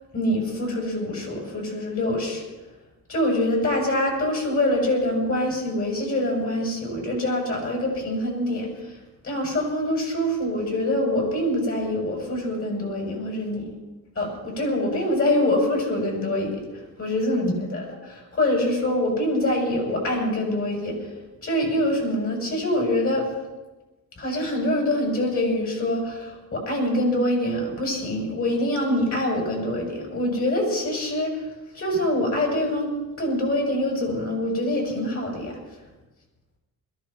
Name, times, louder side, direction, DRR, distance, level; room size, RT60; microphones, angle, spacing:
voice 1, 0.1-2.4 3.1-8.7 9.2-13.7 14.2-16.6 17.0-21.0 21.4-23.3 24.2-31.5 31.7-35.6, left 1 dB, 40° left, 0 dB, 7.2 m, -25 dB
21.5 x 15.0 x 4.4 m, 1.1 s
cardioid pair, 125°, 35 cm